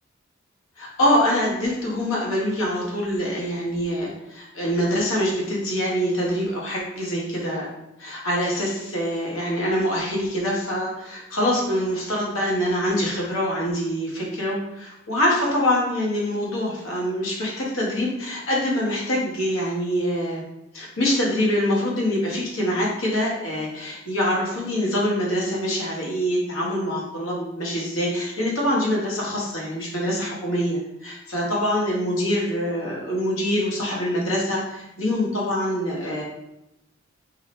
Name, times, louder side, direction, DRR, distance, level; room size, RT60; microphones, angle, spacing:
voice 1, 0.8-7.7 8.0-20.4 20.7-36.2, equal, 75° left, -3 dB, 1.3 m, -24 dB
4.8 x 2.8 x 3.2 m, 0.89 s
head